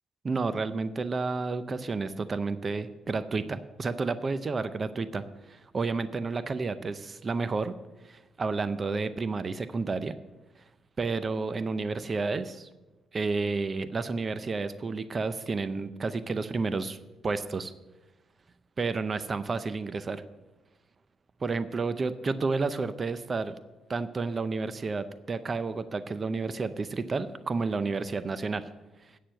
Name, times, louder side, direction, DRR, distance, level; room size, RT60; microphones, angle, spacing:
voice 1, 0.2-7.7 8.0-10.2 11.0-12.7 13.1-17.0 17.2-17.7 18.8-20.2 21.4-23.5 23.9-28.7, right 4 dB, 35° right, 12 dB, 0.6 m, -31 dB
9.2 x 6.7 x 7.6 m, 1.1 s
cardioid pair, 90°, 0 cm